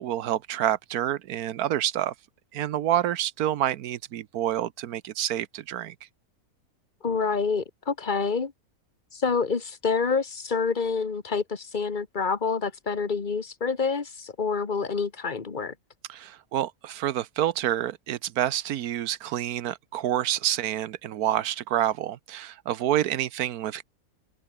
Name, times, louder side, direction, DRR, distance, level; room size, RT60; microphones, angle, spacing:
voice 1, 0.0-2.1 2.5-5.9 16.1-23.8, right 12 dB, 85° right, 1.3 m, -28 dB
voice 2, 7.0-8.5 9.1-15.7, left 5 dB, 35° left, 1.6 m, -27 dB
open air
omnidirectional pair, 1.6 m